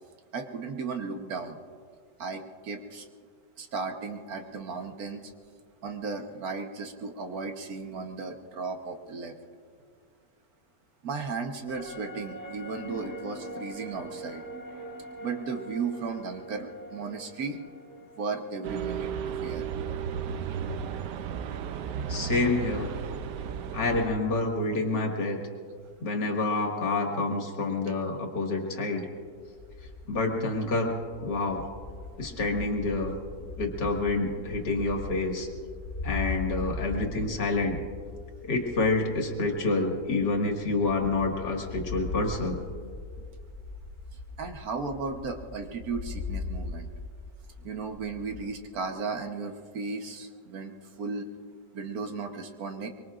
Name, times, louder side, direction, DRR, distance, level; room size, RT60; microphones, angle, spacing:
voice 1, 0.3-1.6 2.2-3.0 3.6-5.2 5.8-9.3 11.0-14.4 15.2-17.6 18.2-19.7 44.4-46.9 47.6-50.7 51.0-51.3 51.7-52.9, right 4 dB, 60° right, 5 dB, 1.5 m, -35 dB
sound 1, 11.7-21.2 21.5-21.6, right 1 dB, 10° left, 1.4 m, -44 dB
sound 2, 18.6-24.1, right 7 dB, 80° right, 1.3 m, -34 dB
voice 2, 22.1-22.9 23.7-25.4 26.0-29.1 30.1-30.9 31.2-31.6 32.2-33.1 33.6-35.5 36.0-37.8 38.5-42.6, left 3 dB, 75° left, 1 dB, 2.6 m, -28 dB
sound 3, 29.4-48.5, left 3 dB, 35° left, 3.3 m, -40 dB
24.0 x 23.5 x 2.5 m, 2.1 s
omnidirectional pair, 1.9 m